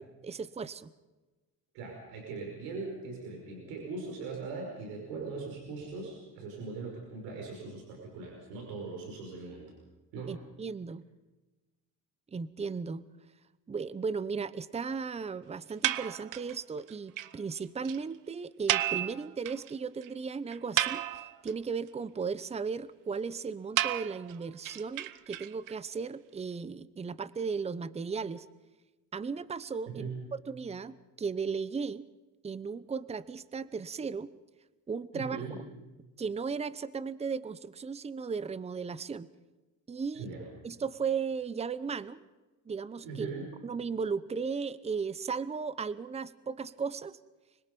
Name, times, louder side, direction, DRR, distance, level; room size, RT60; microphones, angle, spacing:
voice 1, 0.2-0.9 10.3-11.0 12.3-13.0 13.7-28.5 29.1-32.1 32.4-34.3 34.9-35.5 36.2-39.3 39.9-40.3 40.6-42.2 42.7-43.3 43.6-47.2, right 5 dB, 20° right, 17 dB, 0.8 m, -36 dB
voice 2, 1.7-9.7 10.1-10.4 29.9-30.2 35.1-35.6 40.1-40.5 43.0-43.5, right 4 dB, 90° right, 0 dB, 5.5 m, -40 dB
sound 1, 15.8-16.6 16.9-17.0 17.2-17.3 17.6-17.7 17.9-18.0 18.7-19.7 20.0-20.1 20.5-21.5 23.8-25.7, right 14 dB, 65° right, 1.0 m, -31 dB
25.5 x 21.5 x 5.4 m, 1.1 s
cardioid pair, 105°, 35 cm